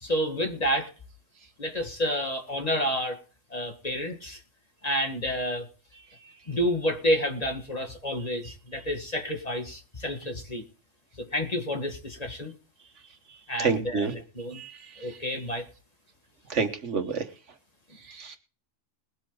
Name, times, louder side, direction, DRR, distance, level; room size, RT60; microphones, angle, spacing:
voice 1, 0.0-0.9 1.6-3.2 3.5-4.4 4.8-5.7 6.5-10.6 11.2-12.5 13.5-14.6 15.0-15.6, equal, 30° left, 4 dB, 1.9 m, -29 dB
voice 2, 13.6-14.1 14.5-14.8 16.5-17.3 18.1-18.4, right 5 dB, 75° right, 7 dB, 1.7 m, -28 dB
21.0 x 8.3 x 3.9 m, 0.38 s
omnidirectional pair, 1.3 m